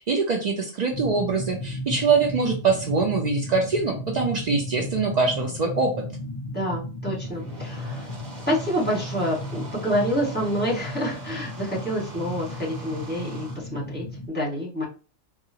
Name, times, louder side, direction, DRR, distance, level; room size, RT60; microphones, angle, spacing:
voice 1, 0.0-5.9, right 4 dB, 80° right, 2 dB, 0.3 m, -23 dB
sound 1, 0.9-14.3, left 1 dB, 55° left, 0.4 m, -35 dB
voice 2, 6.5-8.1 8.5-14.8, equal, 10° left, -5 dB, 1.3 m, -28 dB
sound 2, 7.1-13.6, right 3 dB, 35° right, 1.3 m, -43 dB
3.7 x 2.4 x 2.8 m, 0.35 s
omnidirectional pair, 1.4 m